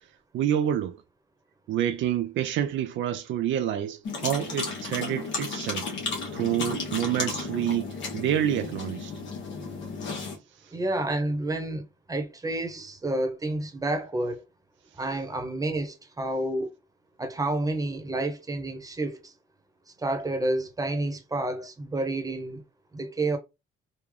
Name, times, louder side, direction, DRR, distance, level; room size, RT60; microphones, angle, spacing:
voice 1, 0.3-1.0 1.7-5.9 6.3-9.1, right 10 dB, 75° right, 0.5 m, -28 dB
sound 1, 4.1-10.4, left 4 dB, 65° left, 1.3 m, -34 dB
voice 2, 10.7-14.4 15.0-16.7 17.2-19.3 20.0-22.6 22.9-23.4, right 2 dB, 15° right, 1.0 m, -29 dB
3.7 x 2.3 x 3.3 m
cardioid pair, 90°, 20 cm